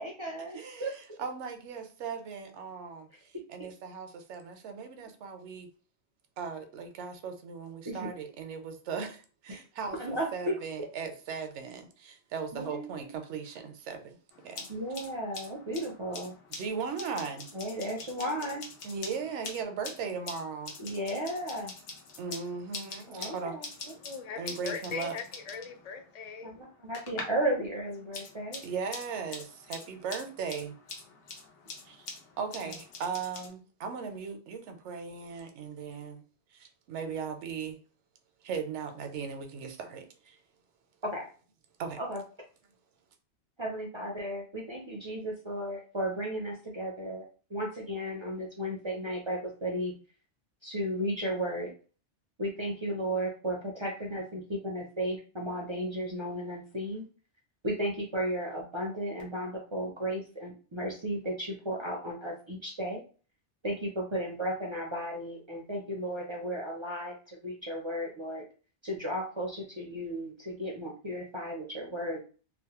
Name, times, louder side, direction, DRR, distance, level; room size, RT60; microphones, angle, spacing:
voice 1, 0.0-1.0 7.8-8.1 9.5-9.6 10.0-10.6 12.5-13.1 14.7-16.3 17.5-18.6 20.8-21.7 23.1-23.6 26.4-28.6 32.6-32.7 41.0-41.3 42.0-42.2 43.6-49.9 50.6-51.7 52.4-57.0 57.6-63.0 63.6-68.4 68.8-72.2, equal, 50° right, 0.3 m, -34 dB
voice 2, 0.5-3.1 3.5-5.7 6.4-14.2 14.4-14.7 16.5-17.5 18.8-20.7 22.2-23.6 24.4-25.2 28.6-30.7 31.8-32.1 32.4-36.2 36.5-37.8 38.4-40.4 41.8-42.0, right 6 dB, 85° right, 0.9 m, -38 dB
sound 1, 14.3-27.5 27.8-33.5, left 4 dB, 85° left, 1.0 m, -45 dB
voice 3, 24.0-26.5, left 6 dB, 65° left, 0.4 m, -40 dB
2.6 x 2.0 x 2.8 m
omnidirectional pair, 1.2 m